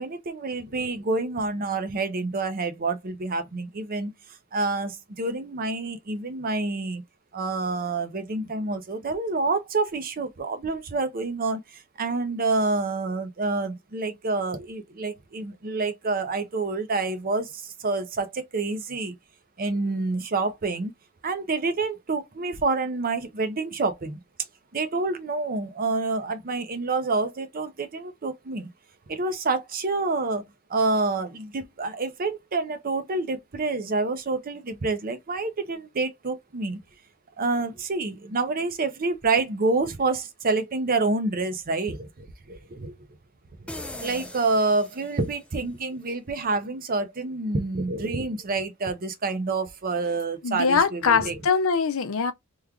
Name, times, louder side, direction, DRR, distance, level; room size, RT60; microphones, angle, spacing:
voice 1, 0.0-4.1 4.5-7.0 7.3-19.1 19.6-20.9 21.2-24.2 24.7-28.7 29.1-30.4 30.7-36.8 37.4-42.9 44.0-51.4, right 3 dB, 45° right, 0.7 m, -28 dB
sound 1, 43.7-45.5, left 1 dB, 5° left, 0.4 m, -39 dB
voice 2, 50.4-52.3, left 5 dB, 65° left, 0.5 m, -22 dB
3.1 x 2.3 x 3.6 m
head